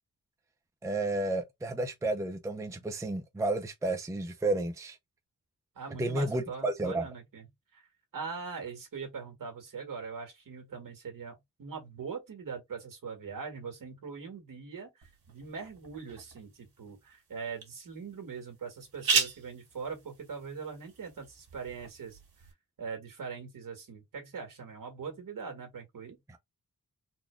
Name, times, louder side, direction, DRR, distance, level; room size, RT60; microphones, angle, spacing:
voice 1, 0.8-5.0 6.0-7.1 26.3-26.4, right 2 dB, 10° right, 0.5 m, -31 dB
voice 2, 5.7-7.5 7.7-7.8 8.1-22.2 22.8-26.2, right 5 dB, 65° right, 1.7 m, -41 dB
sound 1, 15.0-22.5, right 5 dB, 80° right, 1.8 m, -37 dB
4.1 x 2.3 x 3.2 m
wide cardioid pair, 155°, 35 cm